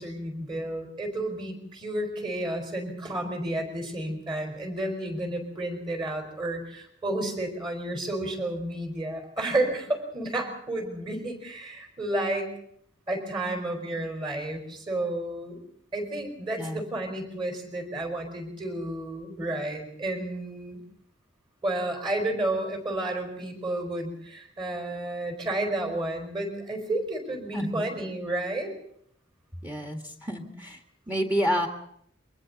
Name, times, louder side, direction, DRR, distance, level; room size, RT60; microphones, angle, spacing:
voice 1, 0.0-12.5 13.1-15.6 15.9-20.8 21.6-28.7, right 1 dB, 25° right, 4 dB, 4.6 m, -31 dB
voice 2, 16.6-16.9 27.5-27.9 29.6-30.8 31.1-31.7, equal, 10° right, 4 dB, 1.8 m, -29 dB
28.0 x 23.0 x 4.1 m, 0.67 s
head